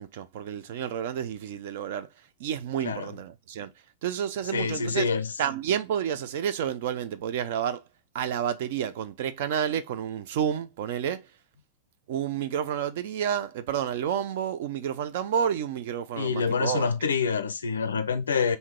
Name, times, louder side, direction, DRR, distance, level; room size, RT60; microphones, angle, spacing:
voice 1, 0.0-2.1 2.4-3.7 4.0-5.1 5.4-7.8 8.1-11.3 12.1-16.9, right 9 dB, 55° right, 0.4 m, -30 dB
voice 2, 4.5-5.3 16.2-18.6, left 5 dB, 70° left, 0.4 m, -26 dB
3.6 x 2.7 x 4.2 m
figure-of-eight pair, 90°, 0 cm